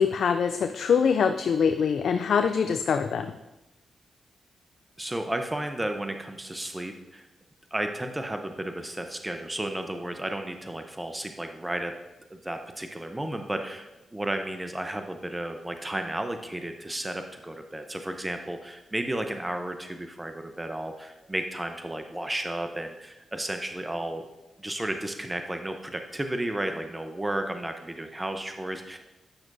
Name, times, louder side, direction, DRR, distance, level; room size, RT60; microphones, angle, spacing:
voice 1, 0.0-3.3, left 6 dB, 70° left, 8 dB, 0.3 m, -24 dB
voice 2, 5.0-7.3 7.7-11.9 12.3-24.3 24.6-29.0, right 1 dB, 20° right, 6 dB, 0.7 m, -33 dB
9.6 x 5.9 x 2.6 m, 0.99 s
hypercardioid pair, 40°, 0 cm